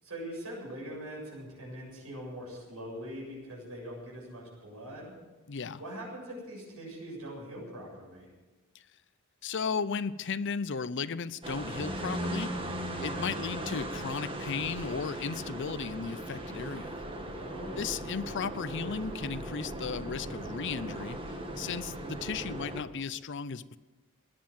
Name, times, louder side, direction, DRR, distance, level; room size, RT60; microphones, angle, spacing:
voice 1, 0.0-5.1 5.8-8.3 17.4-17.9, equal, 75° right, -3 dB, 7.5 m, -42 dB
voice 2, 5.5-5.8 9.4-12.7 13.0-17.0 17.8-21.2 21.6-23.8, left 5 dB, 55° left, 16 dB, 0.6 m, -35 dB
sound 1, 11.4-22.8, right 1 dB, 25° right, 1.6 m, -38 dB
18.0 x 10.5 x 7.6 m, 1.2 s
head